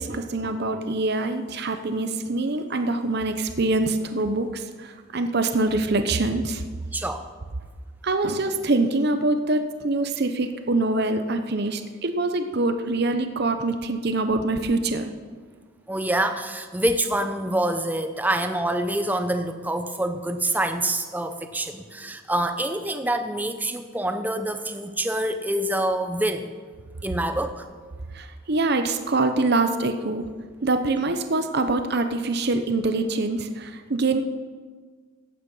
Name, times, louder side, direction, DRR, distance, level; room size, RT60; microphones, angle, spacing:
voice 1, 0.0-6.6 8.0-15.1 28.1-30.2 30.6-34.2, right 2 dB, 50° right, 7 dB, 0.8 m, -24 dB
voice 2, 6.9-7.3 15.9-26.5 27.0-27.7, right 1 dB, 10° right, 8 dB, 0.7 m, -26 dB
15.0 x 9.4 x 5.5 m, 1.5 s
head